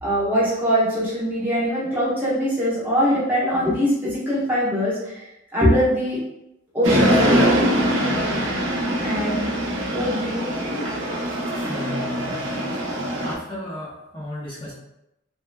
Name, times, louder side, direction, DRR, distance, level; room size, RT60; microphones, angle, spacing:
voice 1, 0.0-6.2 6.7-7.7 8.4-9.5 9.9-10.9, equal, 10° right, -9 dB, 1.0 m, -23 dB
sound 1, 6.8-13.3, equal, 80° right, 0.7 m, -22 dB
voice 2, 11.6-12.8 13.2-14.7, left 1 dB, 25° left, -8 dB, 0.7 m, -35 dB
3.3 x 3.0 x 2.2 m, 0.86 s
head